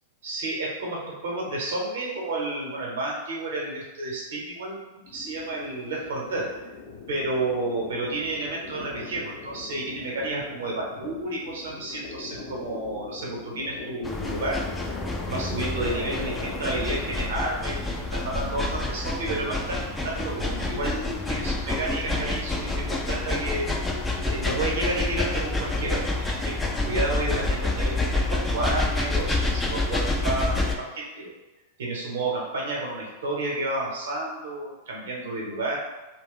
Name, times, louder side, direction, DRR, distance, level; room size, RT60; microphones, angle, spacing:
voice 1, 0.2-4.8 5.1-6.5 7.1-14.6 15.3-23.8 24.2-31.3 31.8-35.8, right 2 dB, 65° right, -3 dB, 0.9 m, -31 dB
sound 1, 5.1-17.1, left 3 dB, 50° left, 0.6 m, -41 dB
sound 2, 14.0-30.7, left 2 dB, 10° left, 0.4 m, -28 dB
2.4 x 2.2 x 3.7 m, 1.1 s
figure-of-eight pair, 95°, 0 cm